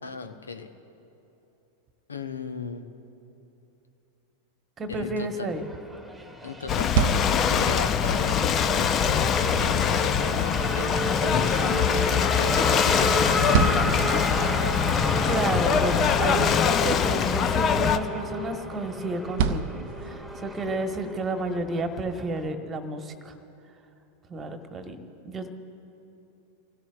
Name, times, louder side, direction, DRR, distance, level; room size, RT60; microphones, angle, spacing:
voice 1, 0.0-0.7 2.1-2.9 4.9-5.5 6.4-10.9 11.2-14.8, left 4 dB, 70° left, 8 dB, 0.9 m, -36 dB
voice 2, 4.8-5.6 15.3-19.7 20.0-23.3 24.3-25.0 25.2-25.5, right 2 dB, 20° right, 7 dB, 1.4 m, -31 dB
Race car auto racing / Accelerating revving vroom, 5.5-22.5, left 1 dB, 5° right, 1.7 m, -31 dB
Ocean / Boat Water vehicle, 6.7-18.0, left 8 dB, 30° left, 0.6 m, -23 dB
sound 1, 6.7-20.6, right 6 dB, 50° right, 0.6 m, -33 dB
28.5 x 17.0 x 2.4 m, 3.0 s
figure-of-eight pair, 90°, 0 cm